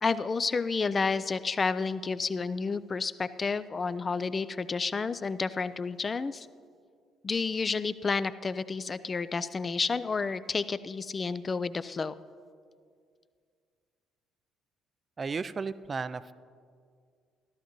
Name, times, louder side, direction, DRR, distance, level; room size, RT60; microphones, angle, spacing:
voice 1, 0.0-6.5 7.2-12.1, left 4 dB, 35° left, 15 dB, 0.4 m, -30 dB
voice 2, 15.2-16.3, right 4 dB, 35° right, 14 dB, 0.4 m, -34 dB
14.5 x 13.0 x 3.0 m, 2.1 s
hypercardioid pair, 50°, 0 cm